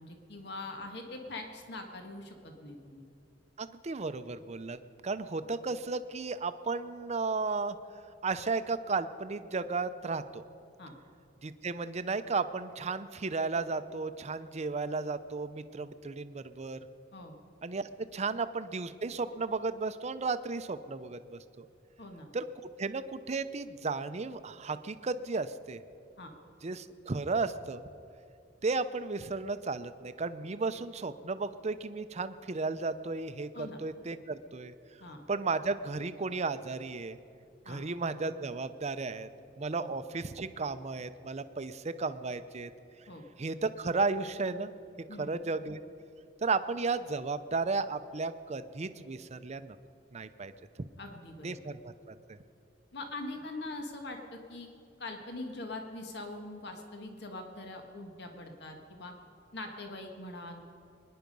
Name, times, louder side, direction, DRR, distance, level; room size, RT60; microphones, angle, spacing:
voice 1, 0.0-3.0 10.8-10.9 17.1-17.3 22.0-22.3 26.2-26.3 33.5-33.8 35.0-35.2 37.6-37.8 39.8-39.9 43.1-43.2 45.1-45.3 51.0-51.6 52.9-54.7 55.0-59.1 59.5-60.6, left 2 dB, 65° left, 3 dB, 1.6 m, -43 dB
voice 2, 3.6-7.8 8.2-10.4 11.4-16.8 17.6-21.7 22.3-22.4 22.8-25.8 26.6-27.8 28.6-34.7 35.3-37.2 37.7-39.3 39.6-42.7 43.4-44.7 45.2-45.8 46.4-49.8 50.1-50.5 51.4-52.4, right 4 dB, 40° right, 12 dB, 0.6 m, -34 dB
23.0 x 10.5 x 5.4 m, 2.6 s
head